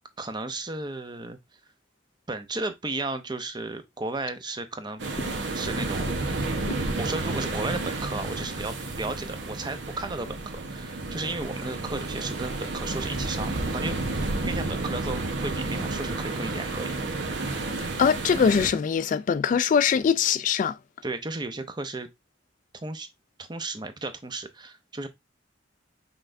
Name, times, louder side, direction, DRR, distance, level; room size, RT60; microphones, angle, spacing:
voice 1, 0.2-1.6 2.3-5.0 5.5-6.1 7.0-14.0 14.4-16.9 21.0-22.1 22.8-23.1 23.4-25.1, right 2 dB, 25° right, 0.6 m, -34 dB
sound 1, 5.0-18.7, right 2 dB, 80° right, 1.0 m, -31 dB
voice 2, 18.0-20.8, left 6 dB, 45° left, 0.3 m, -22 dB
5.7 x 3.3 x 2.5 m
head